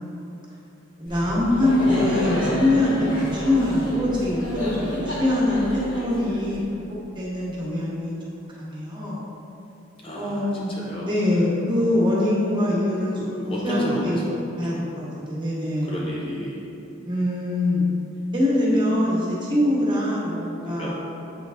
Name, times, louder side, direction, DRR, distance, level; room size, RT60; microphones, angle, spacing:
voice 1, 1.0-5.6 5.9-6.9 7.1-8.1 8.6-9.2 10.1-13.1 13.4-14.3 14.6-15.9 17.0-17.9 18.3-20.9, left 1 dB, 25° right, -6 dB, 1.3 m, -23 dB
Laughter, 1.1-6.9, equal, 70° left, 1.2 m, -30 dB
voice 2, 10.0-11.5 13.2-14.9 15.8-16.7 20.8-20.9, equal, 25° left, -4 dB, 0.6 m, -32 dB
7.7 x 3.9 x 3.4 m, 2.9 s
head